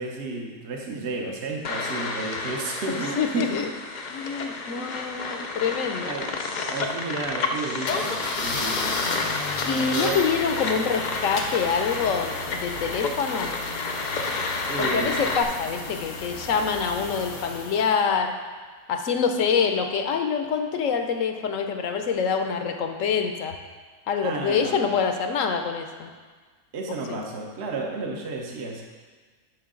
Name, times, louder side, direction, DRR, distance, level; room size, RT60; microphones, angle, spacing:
voice 1, 0.0-3.5 4.7-4.9 6.0-6.4 6.7-9.3 9.7-10.2 14.7-15.2 24.2-24.8 26.7-28.8, right 3 dB, 50° right, 0 dB, 1.1 m, -32 dB
sound 1, 1.6-15.4, left 3 dB, 50° left, 0.5 m, -30 dB
voice 2, 3.2-3.7 4.1-6.1 9.6-13.5 14.8-18.3 18.9-23.5 24.1-26.1 27.1-27.2, left 6 dB, 70° left, 6 dB, 1.0 m, -26 dB
sound 2, 7.9-18.0, left 3 dB, 85° left, 1.4 m, -33 dB
10.0 x 6.3 x 3.8 m, 1.4 s
omnidirectional pair, 1.5 m